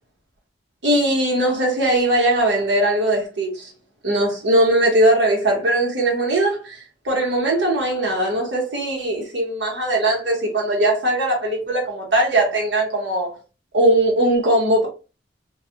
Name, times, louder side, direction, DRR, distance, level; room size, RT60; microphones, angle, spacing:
voice 1, 0.8-3.7 4.0-6.8 7.0-13.3 13.7-14.9, right 1 dB, 80° right, 1.2 m, -20 dB
2.4 x 2.3 x 2.8 m
head